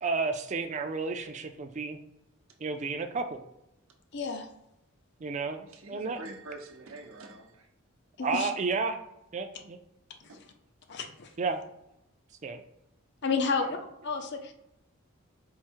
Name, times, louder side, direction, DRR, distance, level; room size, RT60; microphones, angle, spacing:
voice 1, 0.0-2.0 2.6-3.4 5.2-6.2 8.2-9.0 9.3-9.8 11.4-11.6 12.4-12.6, right 4 dB, 35° right, 7 dB, 0.4 m, -32 dB
voice 2, 4.1-4.5 8.2-8.5 10.9-11.3 13.2-13.8 14.0-14.5, left 4 dB, 55° left, 6 dB, 0.6 m, -30 dB
voice 3, 5.7-7.7 10.3-10.4 13.5-13.8, right 2 dB, 85° right, 2 dB, 0.8 m, -46 dB
4.6 x 2.1 x 4.4 m, 0.84 s
head